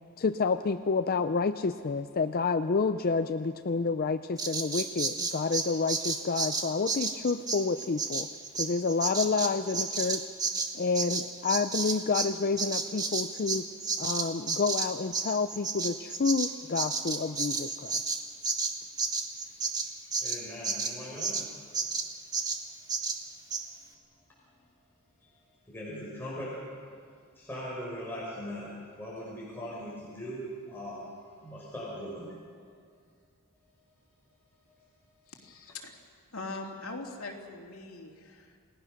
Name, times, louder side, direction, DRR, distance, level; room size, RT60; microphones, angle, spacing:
voice 1, 0.2-8.3 8.6-10.3 10.7-13.7 14.0-18.0, left 4 dB, 45° left, 9 dB, 0.5 m, -29 dB
Bird vocalization bird call bird song, 4.4-12.3 12.6-21.5 21.7-22.1 22.3-22.6 22.9-23.2 23.5-23.6, right 4 dB, 20° right, 1.6 m, -31 dB
voice 2, 20.0-21.5 25.2-25.3 25.7-26.5 27.3-28.7 29.0-31.0 31.4-32.4, equal, 10° left, -7 dB, 5.3 m, -40 dB
voice 3, 35.3-35.9 36.3-38.6, left 3 dB, 70° left, 0 dB, 3.1 m, -41 dB
29.0 x 18.0 x 6.6 m, 2.1 s
head